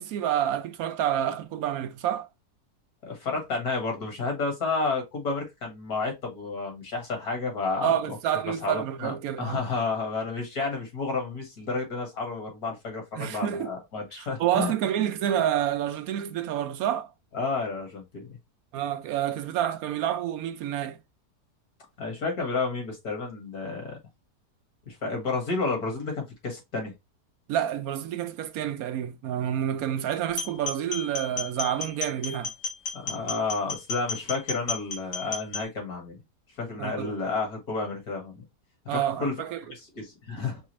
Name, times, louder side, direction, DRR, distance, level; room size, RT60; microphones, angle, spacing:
voice 1, 0.0-2.3 7.8-9.6 13.2-13.7 14.1-17.1 18.7-21.0 27.5-32.5 36.8-37.1 38.9-39.6, right 10 dB, 70° right, 0.9 m, -28 dB
voice 2, 3.0-7.9 8.4-14.7 17.3-18.3 22.0-24.0 24.9-26.9 32.9-36.2 36.6-38.4 38.9-39.3 39.9-40.6, left 3 dB, 65° left, 2.1 m, -31 dB
sound 1, 30.3-35.7, left 4 dB, 85° left, 1.7 m, -34 dB
4.8 x 2.5 x 3.0 m
omnidirectional pair, 1.8 m